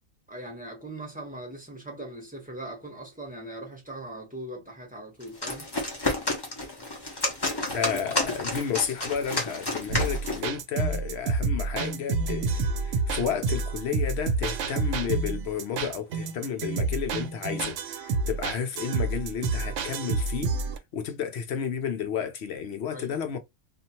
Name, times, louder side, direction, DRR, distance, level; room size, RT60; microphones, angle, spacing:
voice 1, 0.3-5.7 22.9-23.2, right 1 dB, 5° right, 0.9 m, -40 dB
sound 1, 5.2-10.5, left 2 dB, 25° left, 0.7 m, -30 dB
voice 2, 7.5-20.6 20.9-23.4, left 7 dB, 60° left, 0.8 m, -32 dB
sound 2, 9.9-20.8, right 4 dB, 70° right, 0.9 m, -29 dB
2.8 x 2.5 x 2.7 m
omnidirectional pair, 1.3 m